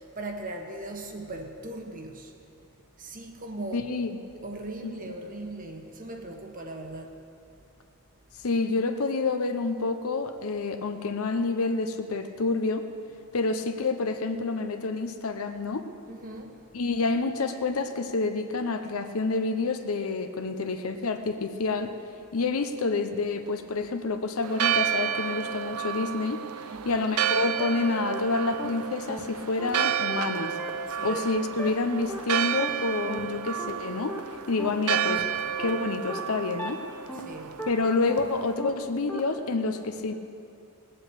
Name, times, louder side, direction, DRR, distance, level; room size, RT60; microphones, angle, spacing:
voice 1, 0.0-2.3 3.0-3.9 4.4-7.2 16.1-16.7 26.7-27.1 30.9-31.4 37.1-37.6, right 2 dB, 35° right, 3 dB, 1.2 m, -39 dB
voice 2, 3.7-4.2 4.8-5.1 8.4-12.9 13.3-15.9 16.7-21.9 22.3-26.4 26.8-30.6 31.0-34.2 34.5-35.3 35.6-36.8 37.7-40.1, left 3 dB, 75° left, 7 dB, 0.8 m, -28 dB
Church bell, 24.4-38.5, right 9 dB, 80° right, 0.5 m, -31 dB
sound 1, 27.2-27.3 27.6-27.7 28.1-28.2 28.6-28.7 29.1-29.2 29.6-29.7 30.1-30.2 30.6-30.7 31.1-31.2 31.6-31.7 32.1-32.2 32.6-32.7 33.1-33.2 33.6-33.7 34.1-34.2 34.6-34.7 35.1-35.2 35.6-35.7 36.1-36.2 36.6-36.7 37.1-37.2 37.6-37.7 38.1-38.2 38.6-38.7 39.1-39.2, equal, 10° left, 1.2 m, -35 dB
18.0 x 7.8 x 8.0 m, 2.6 s
head